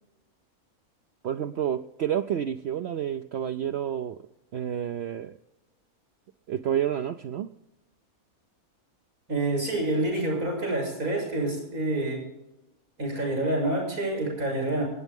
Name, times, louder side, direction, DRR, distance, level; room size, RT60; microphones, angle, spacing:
voice 1, 1.2-4.2 4.5-5.3 6.5-7.5, right 10 dB, 60° right, 7 dB, 0.7 m, -29 dB
voice 2, 9.3-12.2 13.0-14.8, right 2 dB, 85° right, 0 dB, 7.1 m, -27 dB
25.5 x 9.3 x 3.6 m, 0.94 s
omnidirectional pair, 1.5 m